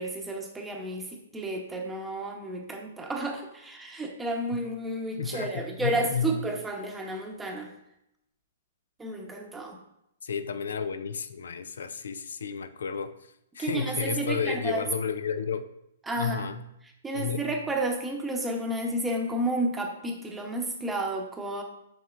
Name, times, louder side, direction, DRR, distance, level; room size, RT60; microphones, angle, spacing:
voice 1, 0.0-7.7 9.0-9.8 13.6-14.9 16.1-16.5 17.0-21.6, right 1 dB, 10° right, 2 dB, 0.9 m, -31 dB
voice 2, 5.2-6.3 10.2-13.1 13.6-15.7 16.2-16.6 17.1-17.4, left 6 dB, 80° left, 11 dB, 0.4 m, -32 dB
7.5 x 5.8 x 2.5 m, 0.81 s
hypercardioid pair, 145°, 0 cm